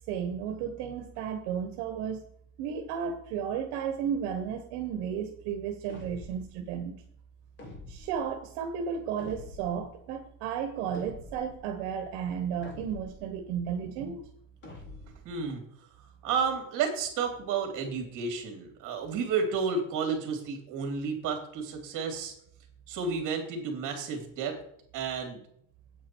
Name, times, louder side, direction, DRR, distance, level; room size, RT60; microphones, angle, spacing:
voice 1, 0.1-2.3 2.6-7.0 7.9-14.2, right 7 dB, 75° right, 6 dB, 1.3 m, -33 dB
sound 1, 5.9-6.5 7.6-8.3 9.2-9.8 10.9-11.6 12.6-13.3 14.6-15.3, left 2 dB, 25° left, 1.5 m, -46 dB
voice 2, 15.2-15.6 16.2-22.3 22.9-24.5 24.9-25.4, right 5 dB, 40° right, 4 dB, 3.0 m, -31 dB
8.6 x 8.5 x 4.5 m, 0.67 s
cardioid pair, 175°, 45 cm